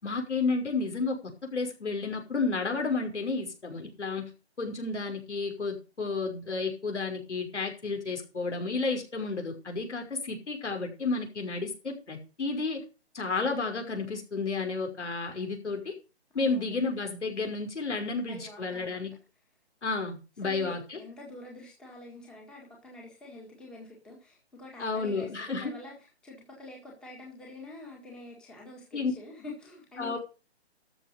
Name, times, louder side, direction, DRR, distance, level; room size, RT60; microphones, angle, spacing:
voice 1, 0.0-4.3 4.6-12.8 13.1-15.9 16.3-19.2 19.8-21.0 24.8-25.7 28.9-29.1 30.0-30.2, left 3 dB, 90° left, 4 dB, 5.8 m, -31 dB
voice 2, 16.3-16.8 18.1-19.1 20.4-26.0 26.2-30.2, left 2 dB, ahead, -1 dB, 1.7 m, -46 dB
13.5 x 7.2 x 5.3 m, 0.31 s
hypercardioid pair, 175°, 34 cm